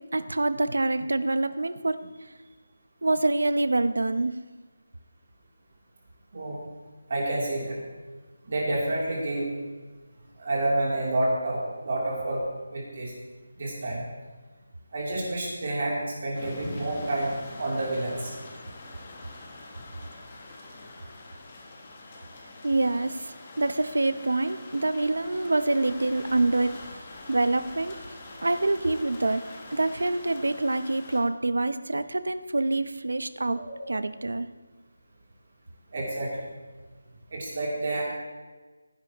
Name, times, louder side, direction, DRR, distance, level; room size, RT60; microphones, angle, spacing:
voice 1, 0.0-2.1 3.0-4.4 22.6-28.0 28.4-29.4 29.7-33.6 33.9-34.5, right 2 dB, 85° right, 12 dB, 0.8 m, -26 dB
voice 2, 7.1-7.8 8.4-9.5 10.4-12.4 12.7-13.1 13.6-14.0 14.9-18.3 35.9-36.3 37.3-38.0, right 2 dB, 35° right, -4 dB, 3.1 m, -29 dB
sound 1, 16.3-31.2, left 2 dB, 20° left, 1.1 m, -44 dB
18.0 x 10.5 x 3.0 m, 1.3 s
figure-of-eight pair, 180°, 0 cm